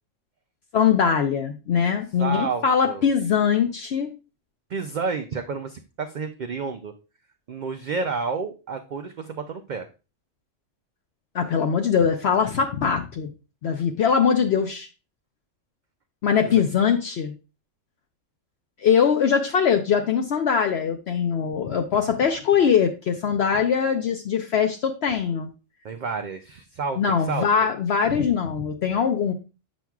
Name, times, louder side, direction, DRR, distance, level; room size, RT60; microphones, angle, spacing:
voice 1, 0.7-4.1 11.3-13.3 13.6-14.9 16.2-17.3 18.8-25.5 27.0-29.3, left 7 dB, 65° left, 4 dB, 0.8 m, -22 dB
voice 2, 2.2-3.1 4.7-6.9 7.5-9.9 16.5-16.6 25.8-27.7, right 4 dB, 70° right, 6 dB, 0.4 m, -30 dB
7.2 x 6.0 x 2.3 m, 0.31 s
omnidirectional pair, 1.3 m